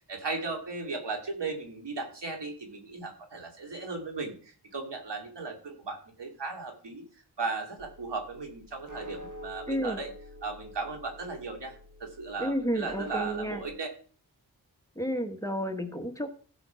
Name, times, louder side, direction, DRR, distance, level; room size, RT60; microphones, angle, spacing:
voice 1, 0.1-7.0 7.4-10.1 10.4-13.9, right 3 dB, 90° right, 2 dB, 2.5 m, -36 dB
sound 1, 7.8-13.7, equal, 45° right, 1.4 m, -46 dB
voice 2, 9.7-10.0 12.4-13.6 14.9-16.3, equal, 10° left, 4 dB, 1.3 m, -31 dB
15.5 x 5.3 x 5.7 m, 0.43 s
wide cardioid pair, 90°, 41 cm